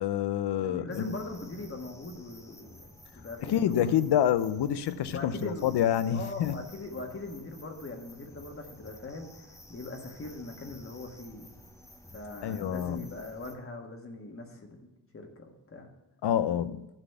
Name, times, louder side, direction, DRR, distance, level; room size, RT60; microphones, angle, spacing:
voice 1, 0.0-1.2 3.4-6.6 12.4-13.0 16.2-16.8, left 10 dB, 65° left, 0.6 m, -27 dB
voice 2, 0.6-3.9 5.1-5.8 6.1-11.5 12.1-15.9, left 2 dB, 30° left, 1.5 m, -41 dB
sound 1, 0.9-13.5, left 1 dB, 5° left, 0.8 m, -52 dB
11.5 x 4.0 x 7.8 m
wide cardioid pair, 130°, 43 cm